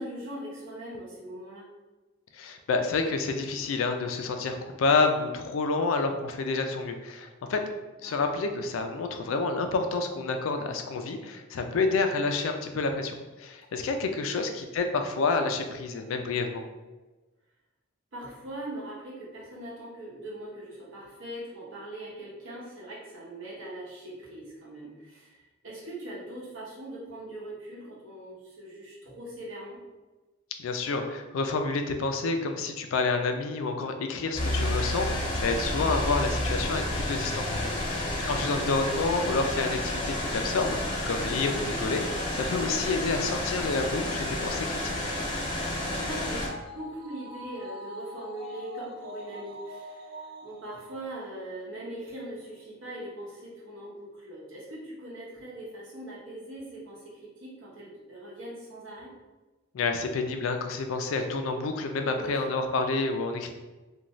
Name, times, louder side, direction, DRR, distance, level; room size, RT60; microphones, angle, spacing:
voice 1, 0.0-1.7 5.7-6.0 8.0-8.3 14.4-14.8 18.1-29.8 37.9-38.1 46.0-46.5 46.7-59.1 62.0-62.5, right 1 dB, 70° right, -5 dB, 0.9 m, -41 dB
voice 2, 2.3-7.6 8.0-16.6 30.6-37.6 37.9-42.0 42.3-44.9 59.7-63.5, left 3 dB, 85° left, 6 dB, 0.4 m, -29 dB
Ambient Fan, 34.3-46.5, left 1 dB, 25° left, 0.6 m, -30 dB
sound 1, 45.2-51.8 52.2-52.3, equal, 45° right, 0.4 m, -44 dB
2.5 x 2.2 x 3.0 m, 1.2 s
head